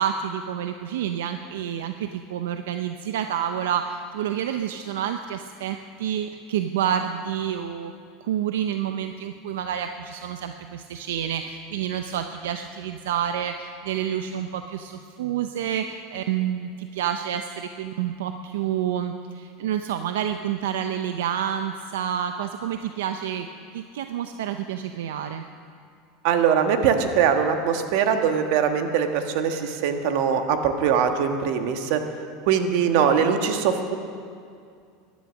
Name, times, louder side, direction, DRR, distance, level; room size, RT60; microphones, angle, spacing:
voice 1, 0.0-7.9 8.2-23.5 23.7-25.4, right 9 dB, 90° right, 7 dB, 0.5 m, -28 dB
voice 2, 26.2-32.0 32.5-34.0, right 7 dB, 65° right, 6 dB, 1.3 m, -22 dB
15.0 x 11.0 x 6.3 m, 2.3 s
supercardioid pair, 130°, 0 cm